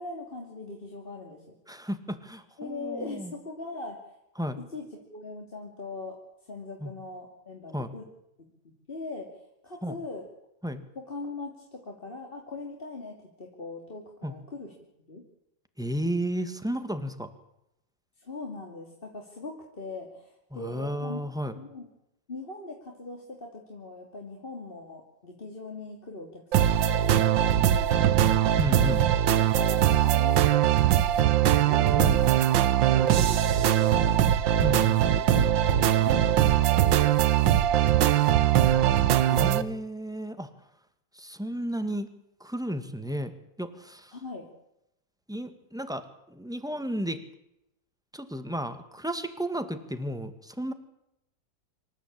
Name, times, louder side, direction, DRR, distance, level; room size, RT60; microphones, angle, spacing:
voice 1, 0.0-1.6 2.6-4.1 4.6-8.0 8.6-10.3 10.9-14.7 15.1-15.2 18.2-21.2 21.6-21.9 22.3-28.1 29.5-32.6 32.9-34.2 35.2-38.4 44.1-44.5, left 3 dB, 25° left, 0 dB, 2.8 m, -41 dB
voice 2, 1.7-3.3 4.4-4.6 6.8-6.9 7.7-7.9 9.8-9.9 10.6-10.8 14.2-14.3 15.8-17.3 20.5-21.5 28.6-29.0 32.0-32.2 34.6-35.1 39.3-40.5 41.1-42.1 42.4-43.3 43.6-44.1 45.3-47.2 48.1-50.7, equal, ahead, 9 dB, 1.6 m, -33 dB
sound 1, 26.5-39.6, right 11 dB, 75° right, 1.7 m, -21 dB
26.0 x 14.0 x 8.7 m, 0.83 s
omnidirectional pair, 2.1 m